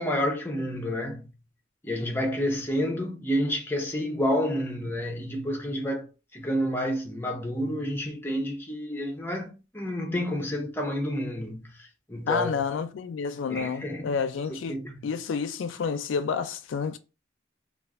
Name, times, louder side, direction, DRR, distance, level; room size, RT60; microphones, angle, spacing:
voice 1, 0.0-1.3 1.8-6.1 6.3-12.6 13.5-14.1 14.5-14.9, equal, 10° left, 0.5 m, -29 dB
voice 2, 12.3-14.8 15.0-17.0, left 6 dB, 85° left, 0.4 m, -29 dB
2.4 x 2.4 x 3.4 m
head